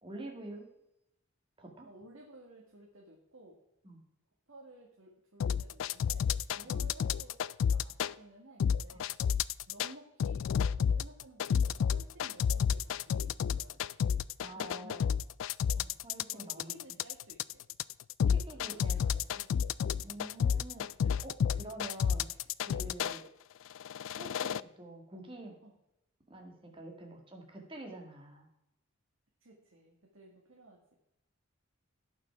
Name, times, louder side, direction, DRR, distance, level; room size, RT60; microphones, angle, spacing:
voice 1, 0.0-0.7 1.6-1.9 3.8-4.0 6.6-6.7 8.9-9.0 14.4-15.1 16.0-16.8 18.2-19.0 19.4-19.5 20.0-23.3 24.1-25.5 26.3-28.5, right 1 dB, 25° right, 1 dB, 2.1 m, -47 dB
voice 2, 1.9-3.6 4.5-6.3 6.6-7.4 7.7-9.4 9.7-14.0 14.5-15.1 15.7-15.9 16.3-17.6 18.6-20.2 25.6-25.7 29.4-30.9, right 1 dB, 80° right, -2 dB, 2.0 m, -55 dB
sound 1, 5.4-8.1 8.6-9.9 10.2-23.2 23.8-24.6, left 7 dB, 70° left, 0.3 m, -30 dB
17.5 x 5.9 x 4.7 m, 0.85 s
head